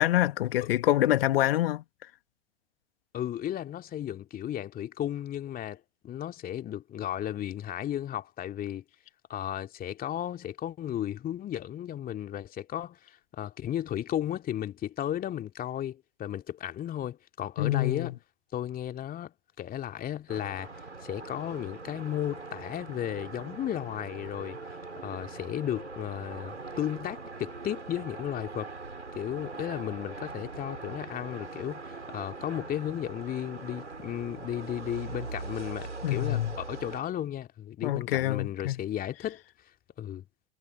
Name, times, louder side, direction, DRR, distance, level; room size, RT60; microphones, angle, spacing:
voice 1, 0.0-1.8 17.6-18.1 36.0-36.5 37.8-38.8, left 14 dB, 55° left, 2.2 m, -26 dB
voice 2, 3.1-8.8 9.3-18.2 18.5-20.7 21.0-24.6 25.0-28.7 29.1-39.4 40.0-40.2, left 11 dB, 25° left, 2.6 m, -34 dB
sound 1, 20.3-37.0, right 3 dB, 80° right, 5.8 m, -42 dB
figure-of-eight pair, 95°, 35 cm